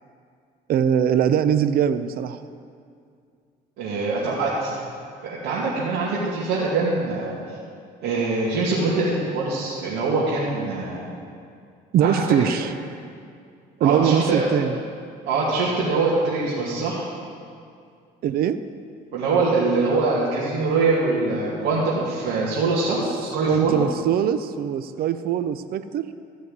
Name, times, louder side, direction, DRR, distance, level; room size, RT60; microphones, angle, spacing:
voice 1, 0.7-2.4 11.9-12.7 13.8-14.8 18.2-18.6 23.4-26.1, right 9 dB, 60° right, 11 dB, 0.6 m, -22 dB
voice 2, 3.8-4.7 5.2-7.4 8.0-11.1 12.0-12.5 13.8-14.5 15.3-17.0 19.1-23.8, right 3 dB, 85° right, -7 dB, 2.5 m, -23 dB
15.0 x 6.4 x 9.5 m, 2.3 s
cardioid pair, 110°, 17 cm